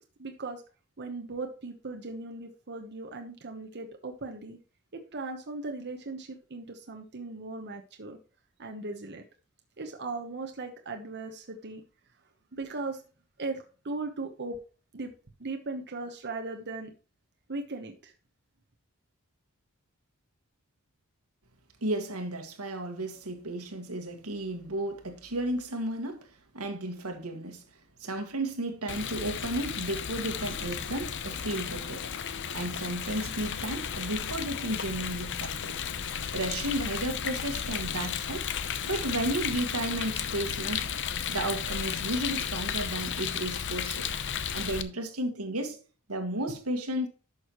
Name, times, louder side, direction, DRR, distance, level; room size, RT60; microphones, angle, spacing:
voice 1, 0.2-0.6 1.0-4.6 4.9-8.2 8.6-9.2 9.8-11.8 12.5-13.0 13.4-14.6 14.9-15.1 15.4-16.9 17.5-18.1, right 3 dB, 50° right, 1.0 m, -38 dB
voice 2, 21.8-26.3 26.5-27.6 28.0-32.1 32.5-35.8 36.3-38.5 38.8-40.9 41.3-44.1 44.5-45.8 46.1-47.1, right 1 dB, 85° right, 1.8 m, -33 dB
Rain, 28.9-44.8, left 8 dB, 55° left, 0.7 m, -34 dB
11.0 x 6.5 x 3.0 m
head